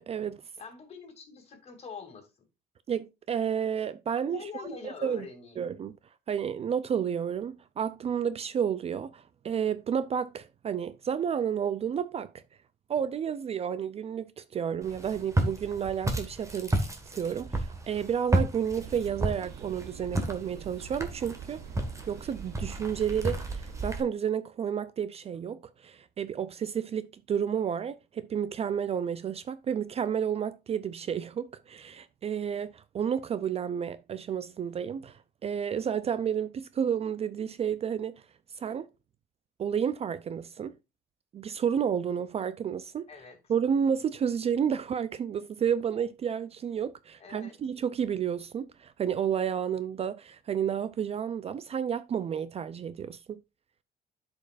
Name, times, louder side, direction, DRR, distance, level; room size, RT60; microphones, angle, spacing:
voice 1, 0.0-0.4 2.9-4.7 5.0-5.2 5.6-5.9 6.3-12.3 12.9-21.6 22.1-38.2 38.6-38.9 39.6-40.7 41.3-43.1 43.5-53.4, right 8 dB, 35° right, 0.4 m, -31 dB
voice 2, 0.6-2.3 4.1-5.7 43.1-43.5 47.2-47.6, left 5 dB, 35° left, 2.6 m, -44 dB
Walk footsteps, 14.8-24.0, right 1 dB, 20° right, 1.6 m, -32 dB
sound 1, 18.8-23.9, right 8 dB, 75° right, 0.7 m, -46 dB
12.5 x 5.3 x 2.5 m
cardioid pair, 110°, 17 cm